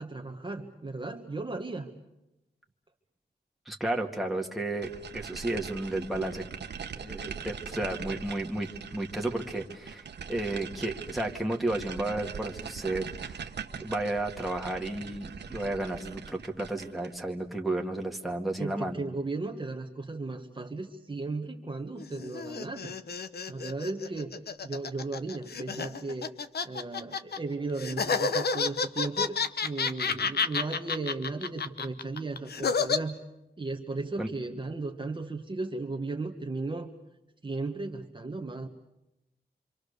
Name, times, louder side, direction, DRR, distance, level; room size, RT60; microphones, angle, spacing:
voice 1, 0.0-1.9 18.6-22.9 23.5-24.3 24.6-26.3 26.6-29.4 29.6-33.2 33.6-36.9 37.4-38.7, right 3 dB, 25° right, 2 dB, 1.5 m, -35 dB
voice 2, 3.7-6.5 7.0-13.4 13.8-19.0 34.2-34.3, right 2 dB, ahead, 0 dB, 2.1 m, -32 dB
sound 1, 4.8-17.2, right 6 dB, 80° right, 1.2 m, -41 dB
sound 2, 22.0-27.4 27.8-33.0, left 5 dB, 65° left, 1.0 m, -30 dB
26.5 x 26.0 x 6.8 m, 0.92 s
wide cardioid pair, 120°, 18 cm